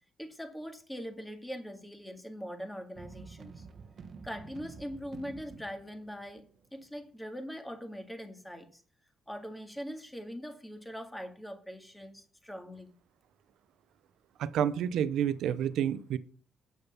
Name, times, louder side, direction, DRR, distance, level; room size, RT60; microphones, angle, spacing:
voice 1, 0.2-3.7 4.2-6.4 6.7-8.8 9.3-12.9, equal, 5° left, 2.0 m, -42 dB
sound 1, 3.0-7.0, right 5 dB, 50° right, 1.0 m, -50 dB
voice 2, 14.4-16.2, right 9 dB, 80° right, 0.6 m, -29 dB
8.7 x 6.9 x 5.7 m
cardioid pair, 90°, 0 cm